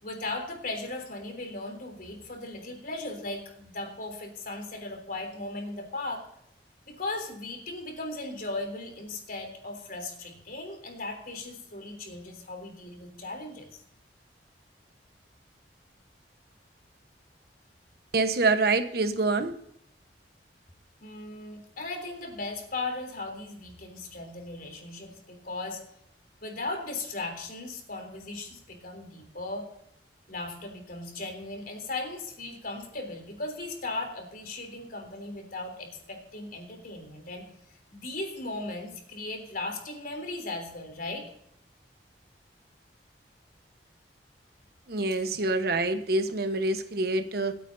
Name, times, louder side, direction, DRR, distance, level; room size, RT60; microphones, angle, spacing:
voice 1, 0.0-6.3 6.9-13.8 21.0-25.8 26.4-29.7 30.3-37.4 37.9-41.3 45.2-45.3, left 2 dB, 55° left, 4 dB, 3.4 m, -37 dB
voice 2, 18.1-19.5 44.9-47.6, right 3 dB, 60° right, 9 dB, 1.1 m, -26 dB
26.5 x 9.2 x 2.7 m, 0.73 s
head